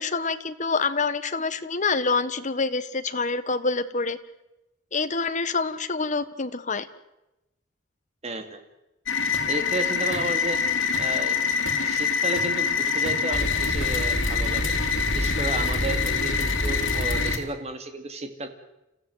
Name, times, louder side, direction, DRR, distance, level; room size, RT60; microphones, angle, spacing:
voice 1, 0.0-4.2 4.9-6.9, left 4 dB, 40° left, 11 dB, 1.3 m, -26 dB
voice 2, 8.2-8.6 9.5-10.6 11.0-11.4 11.8-14.7 15.1-18.5, right 2 dB, 35° right, 7 dB, 2.5 m, -32 dB
sound 1, 9.1-17.4, left 5 dB, 75° left, 3.5 m, -25 dB
30.0 x 15.0 x 7.9 m, 0.94 s
head